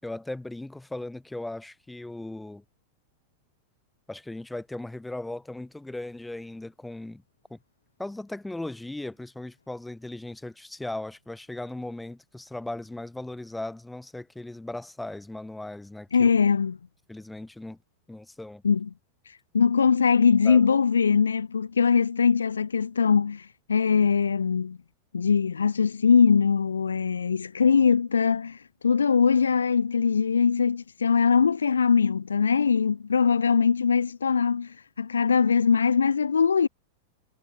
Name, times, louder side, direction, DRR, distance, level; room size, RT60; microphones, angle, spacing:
voice 1, 0.0-2.6 4.1-7.2 7.5-7.6 8.0-16.3 17.1-17.8 18.1-18.6 20.4-20.7, left 2 dB, 5° left, 6.0 m, -37 dB
voice 2, 16.1-16.8 18.6-18.9 19.5-24.8 25.1-36.7, left 6 dB, 70° left, 1.2 m, -22 dB
figure-of-eight pair, 90°, 0 cm